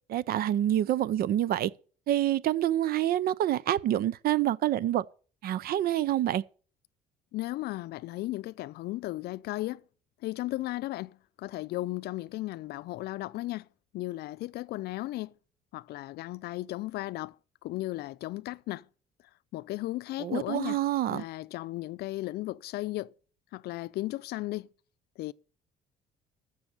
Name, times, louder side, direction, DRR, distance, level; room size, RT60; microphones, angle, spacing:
voice 1, 0.1-1.7 2.1-5.0 5.4-6.4 20.2-21.2, right 12 dB, 65° right, 0.6 m, -27 dB
voice 2, 7.3-9.8 10.2-13.7 13.9-15.3 15.7-17.4 17.6-18.9 19.5-23.1 23.5-24.7 25.2-25.3, left 17 dB, 75° left, 0.5 m, -35 dB
14.5 x 6.3 x 6.6 m
cardioid pair, 110°, 17 cm